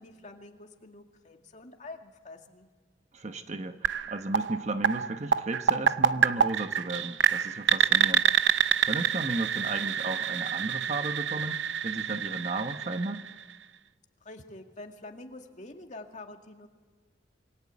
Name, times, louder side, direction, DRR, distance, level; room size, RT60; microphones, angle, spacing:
voice 1, 0.0-2.7 14.2-16.7, left 2 dB, 40° left, 4 dB, 2.2 m, -46 dB
voice 2, 3.1-8.3 8.8-13.2, right 2 dB, 40° right, 8 dB, 1.1 m, -34 dB
sound 1, 3.8-13.6, right 7 dB, 85° right, 0.7 m, -27 dB
27.5 x 23.0 x 8.5 m, 1.4 s
head